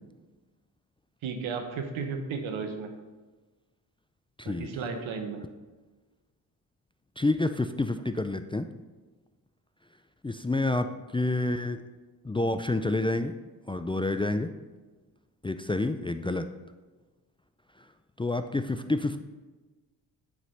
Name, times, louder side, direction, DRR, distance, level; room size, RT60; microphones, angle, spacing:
voice 1, 1.2-2.9 4.4-5.4, right 5 dB, 75° right, 6 dB, 1.2 m, -34 dB
voice 2, 4.4-4.8 7.2-8.7 10.2-11.8 12.2-13.3 13.7-14.5 15.4-16.5 18.2-19.2, left 2 dB, 10° left, 9 dB, 0.4 m, -28 dB
8.0 x 5.0 x 5.7 m, 1.2 s
supercardioid pair, 45°, 48 cm